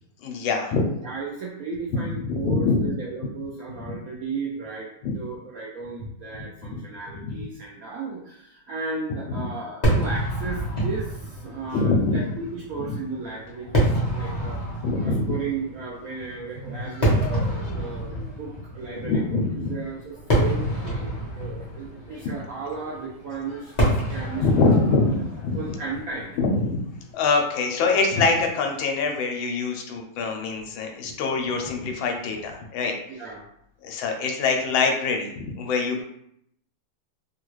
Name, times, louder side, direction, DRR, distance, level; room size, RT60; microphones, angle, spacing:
voice 1, 0.2-0.8 2.3-2.8 5.0-5.1 7.3-7.4 9.4-9.5 11.7-12.2 14.8-15.2 19.0-19.7 24.4-25.6 26.4-26.8 27.1-32.9 33.8-36.0, left 4 dB, 80° left, 3 dB, 1.4 m, -24 dB
voice 2, 0.9-14.6 15.0-24.7 25.5-26.4 31.1-31.2 31.4-31.5 33.1-33.5 35.9-36.0, right 4 dB, 90° right, -4 dB, 0.7 m, -35 dB
Fireworks, 9.8-27.2, right 1 dB, 40° left, 0.6 m, -28 dB
3.4 x 2.3 x 3.0 m, 0.73 s
omnidirectional pair, 2.1 m